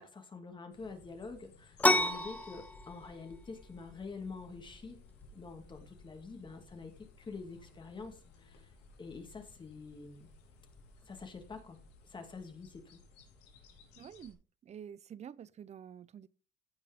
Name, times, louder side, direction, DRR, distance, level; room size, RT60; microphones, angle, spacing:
voice 1, 0.0-5.0 5.3-8.7 9.0-10.3 11.1-11.8 12.0-13.0, left 4 dB, 30° left, 2.4 m, -47 dB
sound 1, 0.7-14.3, left 3 dB, 85° left, 3.0 m, -60 dB
sound 2, 1.8-11.2, left 2 dB, 10° left, 0.7 m, -37 dB
voice 2, 14.0-16.3, right 8 dB, 40° right, 0.6 m, -49 dB
16.0 x 5.4 x 3.6 m
cardioid pair, 110°, 17 cm